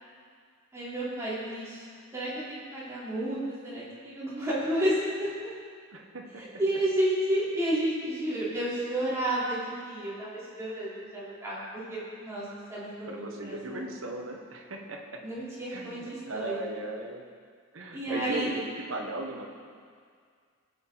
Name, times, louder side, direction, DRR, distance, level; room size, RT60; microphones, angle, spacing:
voice 1, 0.7-1.9 2.1-5.5 6.4-13.8 15.2-16.6 17.9-18.5, right 1 dB, 15° right, -10 dB, 3.5 m, -31 dB
voice 2, 5.9-6.5 13.0-15.2 15.7-17.2 17.7-19.5, right 2 dB, 65° right, 2 dB, 1.2 m, -37 dB
18.0 x 8.0 x 4.0 m, 2.1 s
head